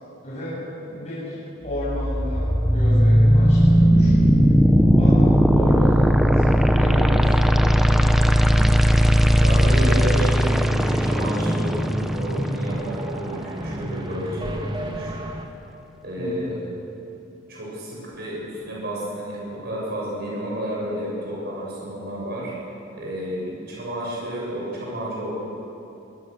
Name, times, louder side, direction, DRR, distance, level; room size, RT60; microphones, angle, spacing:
voice 1, 0.2-1.4 1.6-4.2 4.9-6.5 6.7-7.5 16.2-16.6, left 1 dB, 30° left, -9 dB, 7.7 m, -32 dB
sound 1, 1.7-13.7, equal, ahead, 0.7 m, -18 dB
sound 2, 8.5-15.5, right 1 dB, 20° right, 1.6 m, -35 dB
voice 2, 9.4-15.2 16.0-16.5 17.5-22.5 22.9-25.3, right 1 dB, 50° right, -5 dB, 7.4 m, -31 dB
24.5 x 20.0 x 6.9 m, 2.8 s
head